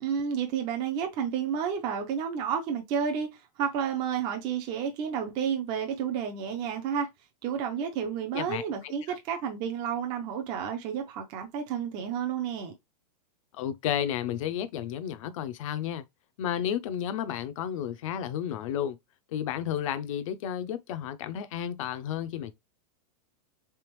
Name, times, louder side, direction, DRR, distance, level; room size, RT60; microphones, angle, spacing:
voice 1, 0.0-7.1 7.4-12.7, right 7 dB, 25° right, 0.4 m, -31 dB
voice 2, 8.3-9.1 13.5-16.1 16.4-19.0 19.3-22.5, left 10 dB, 50° left, 0.5 m, -32 dB
3.4 x 3.3 x 3.0 m
supercardioid pair, 170°, 21 cm